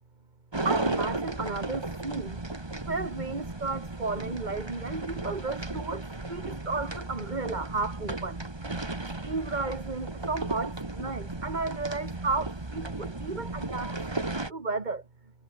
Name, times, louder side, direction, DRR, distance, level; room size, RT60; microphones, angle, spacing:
sound 1, 0.5-14.5, right 2 dB, 20° right, 1.7 m, -35 dB
voice 1, 0.6-2.4 2.9-8.4 9.3-14.0 14.5-15.0, right 3 dB, 35° right, 2.0 m, -33 dB
omnidirectional pair, 1.3 m